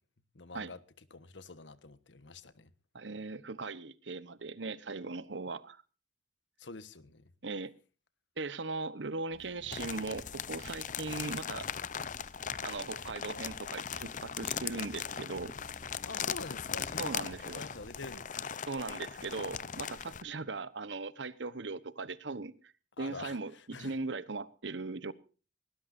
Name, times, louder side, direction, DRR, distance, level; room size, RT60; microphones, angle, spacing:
voice 1, 0.3-0.8 1.1-2.7 6.6-7.3 16.0-18.5 23.0-23.9, left 3 dB, 85° left, 1.3 m, -46 dB
voice 2, 2.9-5.8 7.4-7.7 8.4-11.7 12.6-15.5 17.0-17.6 18.7-22.7 23.0-25.1, right 3 dB, 80° right, 1.1 m, -39 dB
sound 1, 9.3-18.1, left 1 dB, 35° right, 5.2 m, -56 dB
sound 2, 9.7-20.2, left 7 dB, 45° left, 0.7 m, -39 dB
20.0 x 18.5 x 2.7 m
head